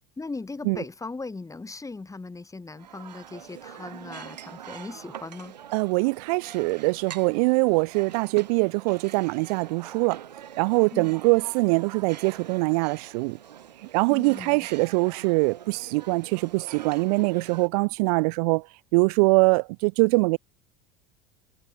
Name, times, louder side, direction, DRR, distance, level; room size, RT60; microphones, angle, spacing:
voice 1, 0.2-5.5 10.9-11.1 14.1-14.7, left 3 dB, 15° left, 4.7 m, -38 dB
sound 1, 2.7-17.7, right 10 dB, 85° right, 1.2 m, -44 dB
voice 2, 5.7-10.2 10.6-13.4 13.9-18.7 18.9-20.4, right 29 dB, 65° right, 0.6 m, -23 dB
hypercardioid pair, 75°, 21 cm